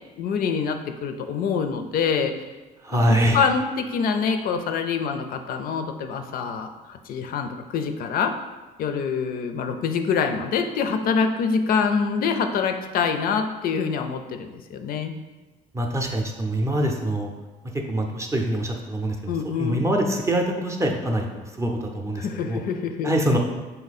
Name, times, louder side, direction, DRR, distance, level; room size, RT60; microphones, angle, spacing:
voice 1, 0.2-2.3 2.9-8.3 8.8-15.1 19.3-19.9 22.2-23.1, left 6 dB, 60° left, 7 dB, 0.4 m, -25 dB
voice 2, 2.8-3.4 15.7-17.3 17.7-19.3 19.6-22.6 23.0-23.4, right 1 dB, 15° right, 1 dB, 0.5 m, -24 dB
4.0 x 2.7 x 4.0 m, 1.2 s
cardioid pair, 110°, 17 cm